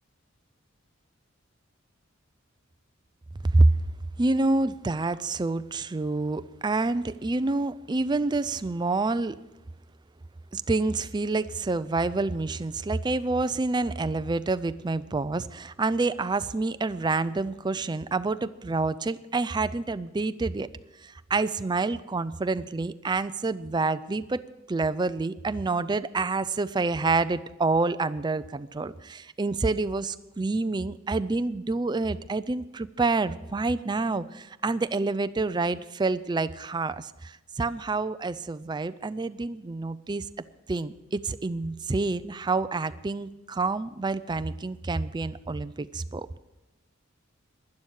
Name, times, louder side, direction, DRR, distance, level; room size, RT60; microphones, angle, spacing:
voice 1, 3.4-3.8 4.2-9.4 10.5-20.7 21.0-24.4 24.7-40.3 40.7-46.3, right 3 dB, 20° right, 14 dB, 0.4 m, -27 dB
11.5 x 10.5 x 6.4 m, 0.98 s
head